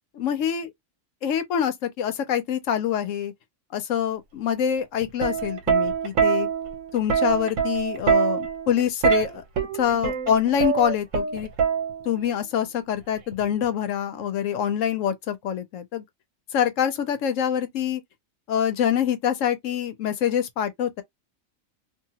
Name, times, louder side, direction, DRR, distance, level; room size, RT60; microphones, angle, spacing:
voice 1, 0.2-0.7 1.2-3.3 3.7-6.5 6.9-11.5 12.0-16.0 16.5-18.0 18.5-21.0, left 9 dB, 75° left, 1.0 m, -25 dB
Plucked string instrument, 5.0-12.3 13.3-13.6, right 7 dB, 75° right, 1.1 m, -24 dB
2.8 x 2.5 x 2.8 m
omnidirectional pair, 1.4 m